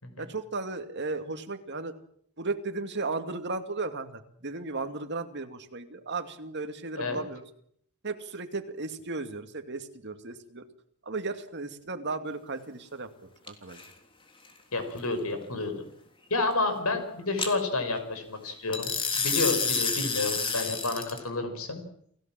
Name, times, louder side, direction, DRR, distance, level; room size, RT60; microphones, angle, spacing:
voice 1, 0.2-1.9 2.4-7.4 8.0-10.6 11.0-13.1 13.5-13.8, right 3 dB, 55° right, 7 dB, 2.4 m, -35 dB
sound 1, 13.5-13.9 17.4-17.5 18.7-21.2, left 5 dB, 25° left, 3.4 m, -29 dB
voice 2, 14.7-15.7 16.3-21.8, left 3 dB, 90° left, 8 dB, 6.0 m, -30 dB
29.5 x 17.0 x 7.6 m, 0.67 s
head